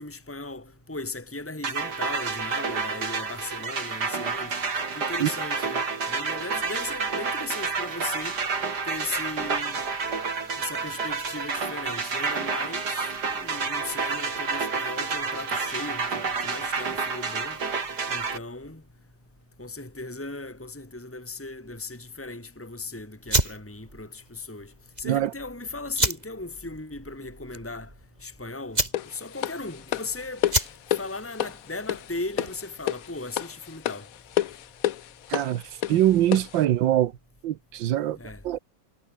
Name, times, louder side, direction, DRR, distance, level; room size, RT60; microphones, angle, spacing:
voice 1, 0.0-8.4 8.8-9.8 10.6-17.6 18.1-18.8 19.6-24.7 25.0-27.9 28.2-30.4 31.0-34.1 38.1-38.4, left 3 dB, 5° left, 3.0 m, -37 dB
sound 1, 1.6-18.4, right 5 dB, 60° right, 3.3 m, -29 dB
sound 2, 23.2-32.7, right 1 dB, 20° right, 4.2 m, -31 dB
sound 3, 28.9-36.6, left 12 dB, 60° left, 1.0 m, -31 dB
voice 2, 35.3-35.6 35.9-37.1 37.4-38.2 38.4-38.6, right 12 dB, 80° right, 1.6 m, -23 dB
omnidirectional pair, 2.1 m